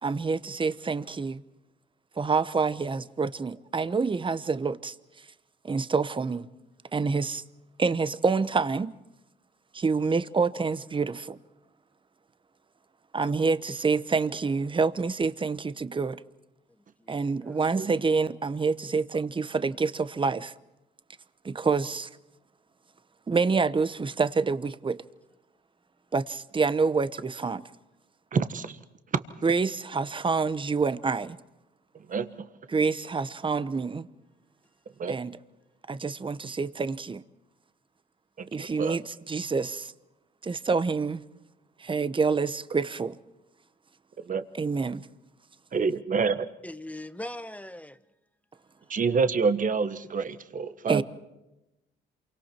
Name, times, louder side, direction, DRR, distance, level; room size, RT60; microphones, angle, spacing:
voice 1, 0.0-1.4 2.2-4.9 5.6-6.5 6.9-7.4 7.8-8.9 9.7-11.4 13.1-16.2 17.1-20.5 21.4-22.1 23.3-25.0 26.1-27.6 29.4-31.4 32.7-34.1 35.1-35.3 35.9-37.2 38.5-39.9 40.4-41.2 41.8-43.1 44.5-45.0 50.9-51.0, right 4 dB, 25° right, 1.0 m, -27 dB
voice 2, 17.0-17.6 46.6-48.0, left 1 dB, 5° left, 1.1 m, -40 dB
voice 3, 28.3-28.8 32.1-32.5 35.0-35.2 38.4-39.0 44.3-44.4 45.7-46.5 48.9-51.0, right 5 dB, 40° right, 1.4 m, -27 dB
28.0 x 24.0 x 4.5 m
cardioid pair, 90°, 20 cm